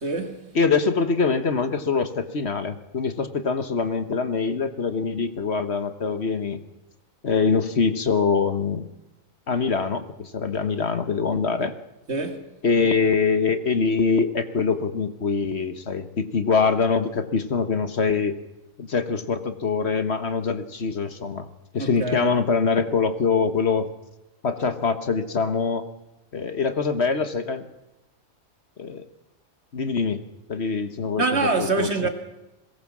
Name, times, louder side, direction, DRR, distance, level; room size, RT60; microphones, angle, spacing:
voice 1, 0.0-0.5 12.1-12.4 21.8-22.3 31.2-32.1, right 3 dB, 50° right, 2.4 m, -25 dB
voice 2, 0.5-6.6 7.2-8.9 9.5-11.7 12.6-18.4 18.8-21.5 21.7-23.9 24.4-25.9 26.3-27.6 28.8-29.0 29.7-30.2 30.5-32.1, left 5 dB, 50° left, 1.5 m, -24 dB
21.5 x 18.5 x 7.3 m
omnidirectional pair, 1.4 m